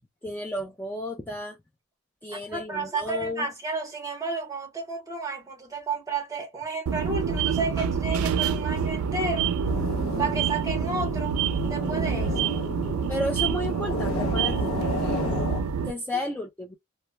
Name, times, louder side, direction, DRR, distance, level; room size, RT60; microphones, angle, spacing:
voice 1, 0.2-1.6 2.2-3.5 13.1-14.7 15.9-16.8, left 1 dB, 10° left, 0.3 m, -32 dB
voice 2, 2.5-9.5 10.2-11.4 11.6-12.6 16.1-16.2, right 3 dB, 15° right, 0.9 m, -32 dB
sound 1, 6.9-15.9, right 6 dB, 80° right, 0.4 m, -27 dB
sound 2, 9.6-15.6, left 2 dB, 70° left, 0.7 m, -33 dB
2.2 x 2.1 x 2.9 m
head